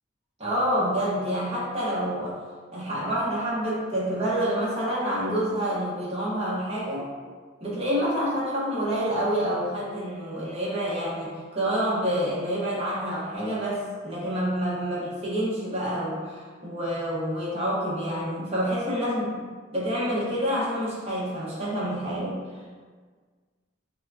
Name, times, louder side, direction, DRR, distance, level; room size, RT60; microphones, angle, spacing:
voice 1, 0.4-2.4 2.7-7.1 7.6-22.4, equal, 30° right, -7 dB, 1.0 m, -28 dB
4.8 x 2.2 x 2.6 m, 1.5 s
head